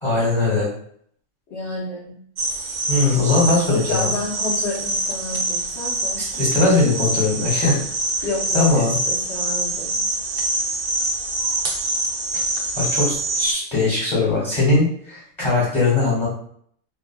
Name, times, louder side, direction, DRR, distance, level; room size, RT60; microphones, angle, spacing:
voice 1, 0.0-0.7 2.9-4.1 6.2-7.8 8.5-9.0 12.3-12.4 12.7-16.3, left 3 dB, 35° left, -7 dB, 1.3 m, -20 dB
voice 2, 1.5-2.2 3.7-6.4 8.2-10.0, left 2 dB, 60° left, -9 dB, 1.1 m, -30 dB
sound 1, 2.4-13.5, right 2 dB, 60° right, 0.6 m, -25 dB
2.8 x 2.4 x 2.3 m, 0.64 s
omnidirectional pair, 1.4 m